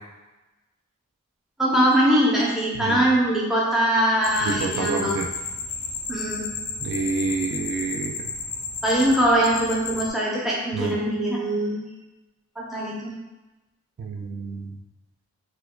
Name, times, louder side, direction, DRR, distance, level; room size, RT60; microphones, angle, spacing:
voice 1, 1.6-5.1 6.1-6.5 8.8-11.8 12.6-13.1, right 1 dB, ahead, -6 dB, 0.6 m, -22 dB
sound 1, 4.2-10.1, left 4 dB, 85° left, 0.5 m, -32 dB
voice 2, 4.4-5.3 6.8-8.1 10.7-11.0 14.0-14.8, right 4 dB, 55° right, 3 dB, 0.3 m, -28 dB
4.4 x 2.2 x 2.2 m, 1.1 s
head